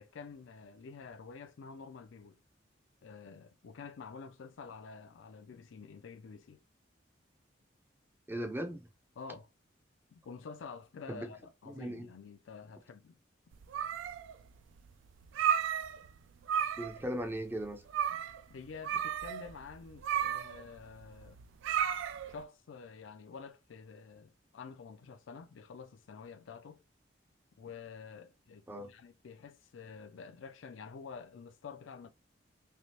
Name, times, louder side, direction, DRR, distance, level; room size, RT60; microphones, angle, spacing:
voice 1, 0.0-2.4 3.0-6.6 9.2-9.5 10.1-13.2 18.1-21.4 22.2-26.8 27.6-32.1, left 5 dB, 85° left, 0.4 m, -49 dB
voice 2, 8.3-8.9 11.1-11.3 11.7-12.1 16.8-17.8 28.7-28.9, right 1 dB, 10° right, 0.4 m, -38 dB
sound 1, 13.5-14.4 14.8-14.9 15.2-16.2 16.4-17.1 17.3-17.4 17.9-18.4 18.8-22.4, right 8 dB, 80° right, 0.3 m, -33 dB
3.3 x 3.3 x 2.7 m
head